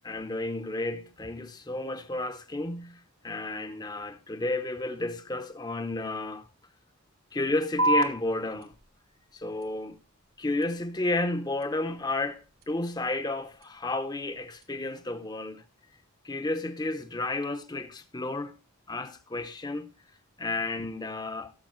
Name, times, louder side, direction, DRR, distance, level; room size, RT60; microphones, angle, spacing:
voice 1, 0.0-6.5 7.3-8.7 9.3-10.0 10.4-15.6 16.2-18.6 18.9-19.9 20.4-21.5, left 2 dB, 20° left, 0.7 m, -32 dB
sound 1, 7.8-14.8, right 2 dB, 80° right, 2.1 m, -35 dB
16.0 x 7.5 x 3.1 m
head